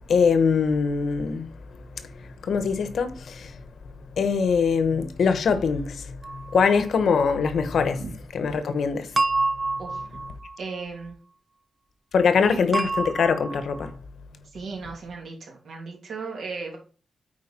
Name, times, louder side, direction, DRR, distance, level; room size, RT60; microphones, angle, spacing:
voice 1, 0.1-1.5 2.0-3.6 4.2-8.0 8.3-9.1 12.1-13.9, left 5 dB, 70° left, 1.0 m, -23 dB
sound 1, 6.2-6.7 9.2-10.8 12.7-13.9, right 3 dB, 20° right, 0.4 m, -28 dB
voice 2, 9.8-10.2 10.6-11.2 14.5-16.8, right 4 dB, 80° right, 2.8 m, -36 dB
8.9 x 4.6 x 4.2 m
wide cardioid pair, 170°, 0 cm